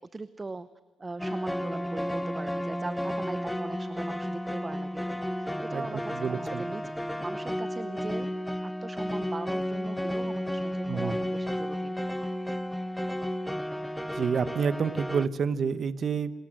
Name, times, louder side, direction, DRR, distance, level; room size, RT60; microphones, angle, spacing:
voice 1, 0.1-0.7 1.0-8.3 8.6-12.0, right 3 dB, 25° right, 14 dB, 0.8 m, -40 dB
sound 1, 1.2-15.3, equal, 5° left, 0.9 m, -32 dB
voice 2, 5.7-6.6 10.9-11.2 14.1-16.3, right 6 dB, 50° right, 14 dB, 1.2 m, -29 dB
28.0 x 20.0 x 7.7 m, 1.3 s
cardioid pair, 90°, 0 cm